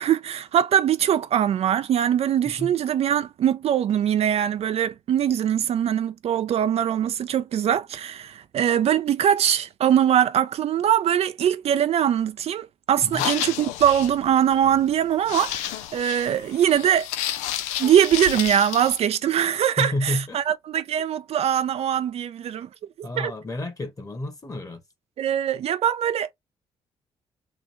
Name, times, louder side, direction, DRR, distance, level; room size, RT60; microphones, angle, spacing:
voice 1, 0.0-17.1 17.8-22.7 23.0-23.3 25.2-26.3, right 10 dB, 60° right, 0.4 m, -22 dB
sound 1, 13.0-19.0, left 12 dB, 90° left, 0.4 m, -31 dB
voice 2, 19.8-20.4 23.0-24.8, left 1 dB, 30° left, 1.5 m, -30 dB
3.7 x 2.4 x 3.0 m
supercardioid pair, 55°, 12 cm